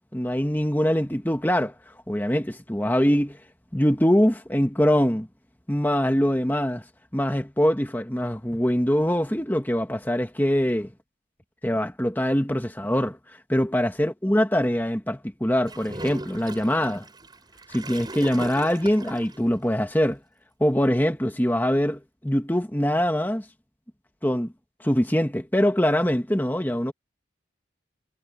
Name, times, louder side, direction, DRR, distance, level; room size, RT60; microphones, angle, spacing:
voice 1, 0.1-1.7 2.1-3.4 3.7-5.3 5.7-6.8 7.1-10.9 11.6-13.2 13.5-17.1 17.7-20.2 20.6-23.4 24.2-24.5 24.8-26.9, equal, 10° left, 1.4 m, -23 dB
Gurgling / Toilet flush, 15.7-19.4, right 2 dB, 20° right, 7.3 m, -39 dB
head